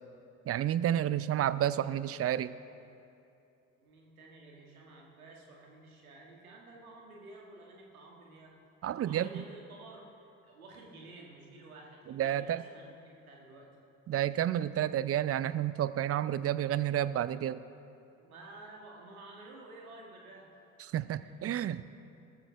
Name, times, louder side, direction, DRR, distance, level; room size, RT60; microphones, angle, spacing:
voice 1, 0.5-2.5 8.8-9.4 12.1-12.6 14.1-17.6 20.9-22.0, right 11 dB, 35° right, 16 dB, 0.5 m, -30 dB
voice 2, 3.8-8.5 9.0-10.2 10.4-13.7 18.2-20.5 21.2-21.4, right 2 dB, 85° right, -1 dB, 1.8 m, -52 dB
19.0 x 13.5 x 3.5 m, 2.6 s
figure-of-eight pair, 50°, 42 cm